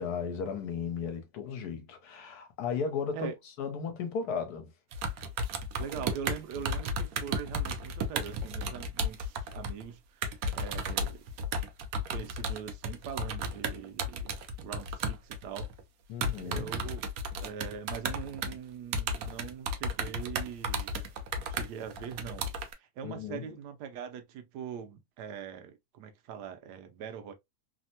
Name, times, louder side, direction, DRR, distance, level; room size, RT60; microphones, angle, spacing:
voice 1, 0.0-3.3 3.6-4.7 16.1-16.7 23.0-23.5, left 6 dB, 75° left, 1.3 m, -35 dB
sound 1, 4.9-9.8 10.2-15.8 16.2-18.6 18.9-22.7, right 1 dB, 70° right, 1.0 m, -33 dB
voice 2, 5.8-11.2 12.1-14.3 14.6-15.7 16.4-17.1 17.4-20.9 21.5-22.5 22.8-27.3, right 8 dB, 90° right, 1.2 m, -42 dB
3.3 x 2.1 x 2.6 m
omnidirectional pair, 1.7 m